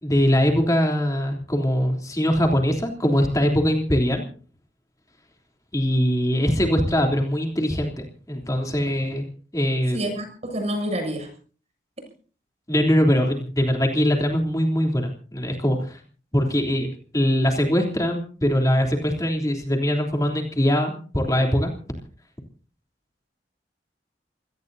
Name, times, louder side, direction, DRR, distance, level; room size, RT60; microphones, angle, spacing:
voice 1, 0.0-4.2 5.7-9.2 9.5-10.0 12.7-16.0 16.3-16.9 17.1-21.7, equal, 20° left, 1 dB, 3.3 m, -22 dB
voice 2, 9.9-11.3, equal, 40° right, 5 dB, 7.5 m, -28 dB
27.5 x 18.5 x 2.7 m, 0.40 s
head